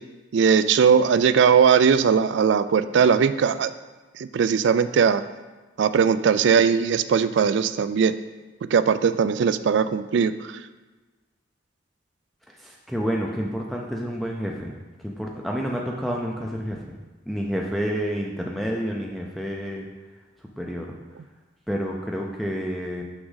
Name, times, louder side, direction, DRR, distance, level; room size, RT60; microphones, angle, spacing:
voice 1, 0.3-3.7 4.2-5.2 5.8-8.1 8.7-10.3, right 6 dB, 65° right, 13 dB, 0.3 m, -19 dB
voice 2, 12.6-14.7 15.0-17.0 17.3-19.9 20.6-20.9 21.7-23.0, equal, ahead, -1 dB, 0.4 m, -29 dB
6.2 x 6.0 x 3.9 m, 1.2 s
head